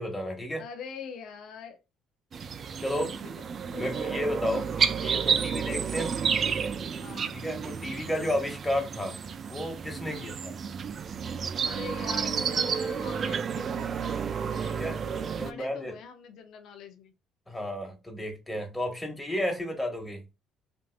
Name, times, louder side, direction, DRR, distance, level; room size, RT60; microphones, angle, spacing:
voice 1, 0.0-0.6 2.8-3.1 3.8-4.7 5.0-6.1 7.3-9.2 9.5-10.6 14.6-15.0 15.4-15.9 17.5-20.2, left 1 dB, 15° left, 1.4 m, -32 dB
voice 2, 0.6-1.8 2.9-3.3 3.7-4.1 7.0-7.4 10.1-10.4 11.6-17.1, left 6 dB, 70° left, 0.6 m, -44 dB
sound 1, 2.3-15.5, right 6 dB, 50° right, 0.4 m, -31 dB
3.5 x 2.6 x 2.4 m
supercardioid pair, 70°, 0 cm